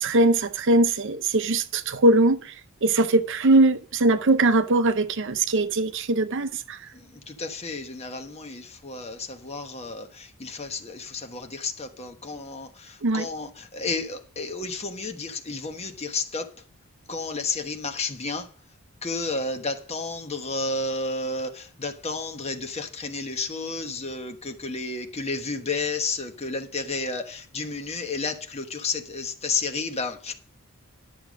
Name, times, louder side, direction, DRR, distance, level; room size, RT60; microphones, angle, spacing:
voice 1, 0.0-2.5 2.8-6.8 13.0-13.3, right 2 dB, 55° right, 0.6 m, -21 dB
voice 2, 7.3-10.1 10.4-12.7 13.1-16.4 17.1-18.4 19.0-30.3, left 3 dB, 30° left, 1.2 m, -31 dB
11.0 x 6.9 x 5.2 m
head